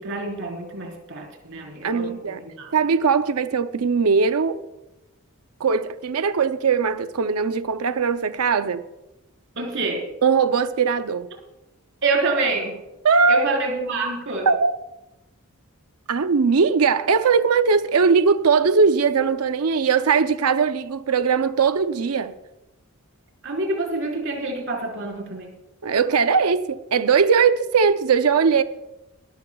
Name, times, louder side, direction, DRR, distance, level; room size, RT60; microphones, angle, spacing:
voice 1, 0.0-2.7 9.5-10.0 12.0-12.8 13.3-14.5 23.4-25.5, right 3 dB, 60° right, 4.5 m, -27 dB
voice 2, 1.8-2.4 2.7-4.6 5.6-8.8 10.2-11.3 13.0-13.5 14.5-14.8 16.1-22.3 25.8-28.6, right 5 dB, 90° right, 0.6 m, -20 dB
22.5 x 13.5 x 2.3 m
head